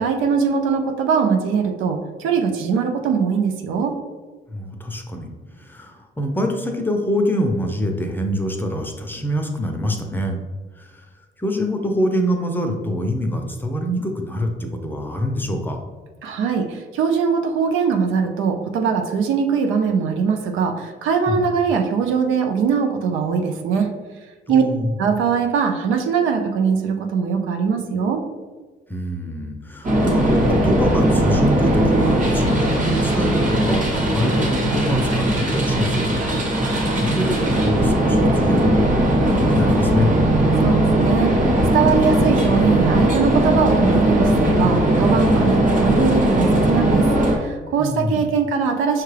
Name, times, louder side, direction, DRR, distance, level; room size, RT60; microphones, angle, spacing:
voice 1, 0.0-3.9 16.2-23.9 24.5-24.6 25.0-28.2 40.6-49.0, right 6 dB, 90° right, 4 dB, 0.5 m, -21 dB
voice 2, 4.5-5.3 5.5-10.4 10.8-11.0 11.4-15.8 21.3-21.4 24.5-25.0 28.9-36.1 36.6-40.1 47.8-48.3, equal, 10° left, 3 dB, 0.6 m, -25 dB
sound 1, 29.8-47.4, right 1 dB, 40° right, 1.0 m, -18 dB
5.7 x 2.3 x 3.2 m, 1.3 s
cardioid pair, 90°, 20 cm